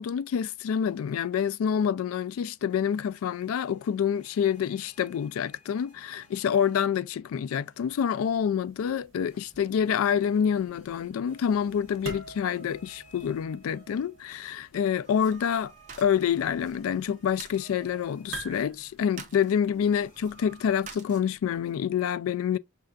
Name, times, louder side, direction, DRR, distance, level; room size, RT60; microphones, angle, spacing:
voice 1, 0.0-15.7 16.0-22.6, left 8 dB, 85° left, 0.3 m, -27 dB
sound 1, 2.7-7.2 7.5-8.1 9.3-14.6 15.0-19.1 19.7-20.8, right 3 dB, 35° left, 1.9 m, -57 dB
sound 2, 7.7-20.9, right 3 dB, 65° right, 1.4 m, -48 dB
sound 3, 15.2-21.7, right 5 dB, 35° right, 0.7 m, -50 dB
5.6 x 3.3 x 2.4 m
head